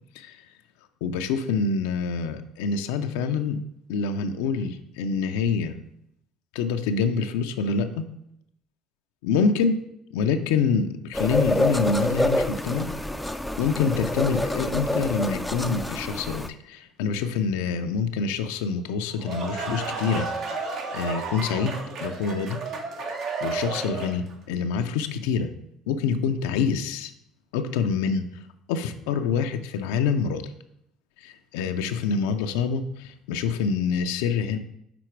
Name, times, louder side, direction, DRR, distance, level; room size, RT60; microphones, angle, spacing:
voice 1, 1.0-3.6 3.9-5.8 6.5-8.1 9.2-9.8 10.1-12.9 13.6-20.6 20.9-21.8 22.0-22.6 23.4-25.5 25.9-27.1 27.5-28.2 28.7-30.4 31.2-34.6, left 5 dB, 85° left, 7 dB, 0.5 m, -26 dB
sound 1, 11.1-16.5, left 1 dB, 5° left, 0.4 m, -27 dB
sound 2, 19.0-24.3, right 4 dB, 55° right, 1.0 m, -32 dB
6.0 x 3.9 x 4.5 m, 0.75 s
supercardioid pair, 90°, 0 cm